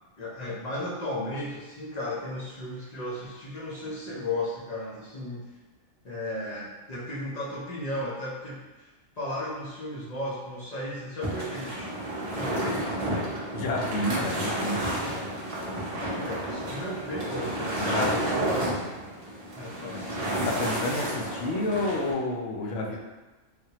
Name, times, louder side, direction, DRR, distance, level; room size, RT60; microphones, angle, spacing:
voice 1, 0.2-5.5 6.0-8.9 9.2-11.9 12.3-13.1 16.2-18.8 19.5-20.1 22.6-23.0, left 1 dB, 50° left, -7 dB, 0.5 m, -35 dB
sound 1, 11.2-22.1, right 1 dB, 40° right, 0.6 m, -31 dB
voice 2, 13.5-14.8 17.9-18.2 20.4-23.0, left 2 dB, 75° left, -1 dB, 0.9 m, -29 dB
3.4 x 2.2 x 2.8 m, 1.1 s
omnidirectional pair, 1.3 m